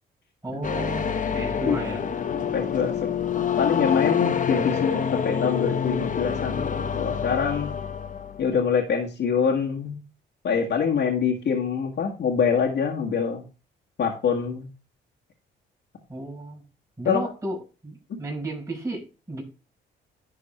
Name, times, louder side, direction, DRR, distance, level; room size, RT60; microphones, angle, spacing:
voice 1, 0.4-2.1 16.1-16.6 17.0-19.4, right 1 dB, 15° right, -4 dB, 5.3 m, -33 dB
sound 1, 0.6-8.5, left 7 dB, 40° left, 1.0 m, -27 dB
voice 2, 2.3-7.7 8.4-10.0 10.4-13.4 14.0-14.7 17.1-17.2, left 6 dB, 65° left, -2 dB, 1.8 m, -25 dB
11.0 x 4.1 x 4.4 m, 0.32 s
cardioid pair, 90°, 20 cm